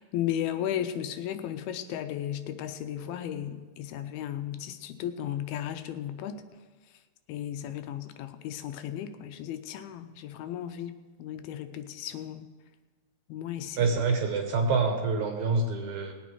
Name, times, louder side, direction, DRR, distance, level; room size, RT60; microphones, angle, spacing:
voice 1, 0.0-6.4 7.3-12.5 13.3-13.9, left 10 dB, 90° left, 9 dB, 2.6 m, -35 dB
voice 2, 13.8-16.1, right 4 dB, 65° right, 4 dB, 2.0 m, -26 dB
19.0 x 8.4 x 4.7 m, 1.4 s
omnidirectional pair, 4.3 m